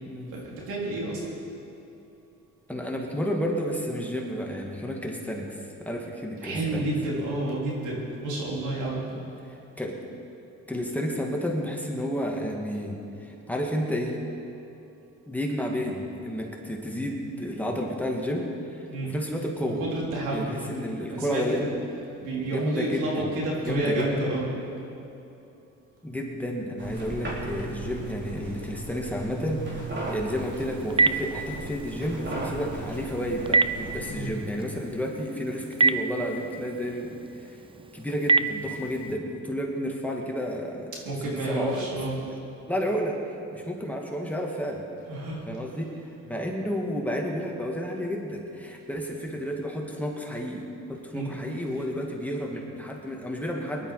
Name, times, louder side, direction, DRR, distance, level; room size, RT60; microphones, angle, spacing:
voice 1, 0.3-1.2 6.4-9.0 18.9-19.1 19.6-20.6 21.1-21.7 22.2-24.5 34.0-34.3 41.0-42.1 45.1-45.4 51.1-51.3, right 2 dB, 90° right, -4 dB, 3.8 m, -30 dB
voice 2, 2.7-6.9 9.1-10.2 10.7-14.2 15.3-19.8 20.3-21.7 22.4-23.3 23.6-24.1 26.0-29.8 30.1-37.6 37.9-40.9 41.4-41.9 42.3-42.4 42.7-43.2 43.5-44.8 45.5-53.9, equal, 5° left, -1 dB, 2.2 m, -31 dB
sound 1, 26.8-34.2, right 2 dB, 40° right, 3.6 m, -36 dB
Telephone, 30.3-39.1, right 3 dB, 20° right, 0.5 m, -29 dB
21.0 x 11.5 x 4.9 m, 2.8 s
cardioid pair, 90°, 30 cm